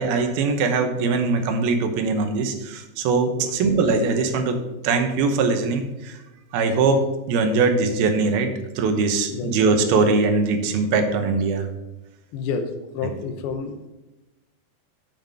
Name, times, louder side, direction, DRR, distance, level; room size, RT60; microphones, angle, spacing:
voice 1, 0.0-4.6 4.8-6.2 6.5-11.7, right 4 dB, 70° right, 5 dB, 2.7 m, -21 dB
voice 2, 12.3-13.8, left 5 dB, 75° left, 6 dB, 2.6 m, -29 dB
9.1 x 5.8 x 6.9 m, 1.0 s
omnidirectional pair, 5.0 m